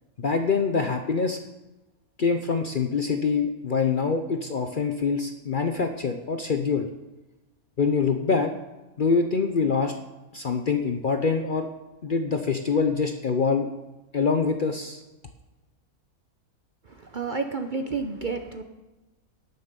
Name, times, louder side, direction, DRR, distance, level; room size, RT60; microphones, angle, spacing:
voice 1, 0.2-1.4 2.2-6.9 7.8-8.5 9.0-9.9 10.3-11.7 12.0-13.7 14.1-15.0, left 5 dB, 45° left, 6 dB, 0.7 m, -25 dB
voice 2, 16.9-18.6, right 4 dB, 45° right, 6 dB, 0.7 m, -30 dB
18.0 x 6.6 x 5.3 m, 1.1 s
omnidirectional pair, 1.5 m